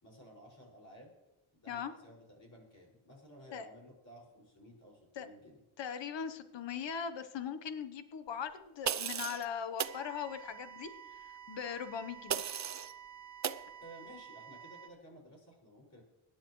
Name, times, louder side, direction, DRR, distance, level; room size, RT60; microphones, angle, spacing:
voice 1, 0.0-1.1 1.5-5.6 13.8-16.0, equal, 35° left, -2 dB, 5.7 m, -55 dB
voice 2, 5.8-12.4, left 7 dB, 60° left, 10 dB, 1.1 m, -40 dB
sound 1, 8.8-9.4 9.8-10.0 12.3-12.9 13.4-13.6, right 8 dB, 35° right, 0.5 m, -35 dB
sound 2, 9.8-14.9, right 9 dB, 65° right, 1.5 m, -51 dB
25.5 x 10.5 x 3.1 m, 1.0 s
wide cardioid pair, 130°, 50 cm